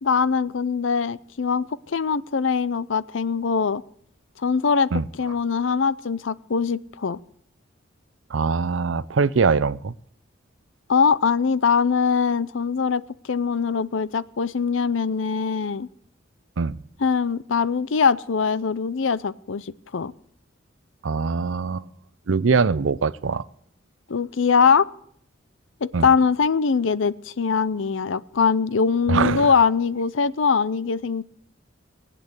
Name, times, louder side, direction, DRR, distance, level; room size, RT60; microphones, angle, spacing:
voice 1, 0.0-3.8 4.4-7.2 10.9-15.9 17.0-20.1 24.1-24.9 25.8-31.2, left 5 dB, 80° left, 18 dB, 0.6 m, -22 dB
voice 2, 8.3-9.9 16.6-16.8 21.0-21.9 22.3-23.4 25.9-26.1 29.1-29.5, right 5 dB, 75° right, 18 dB, 0.6 m, -22 dB
20.0 x 8.5 x 8.2 m, 0.66 s
head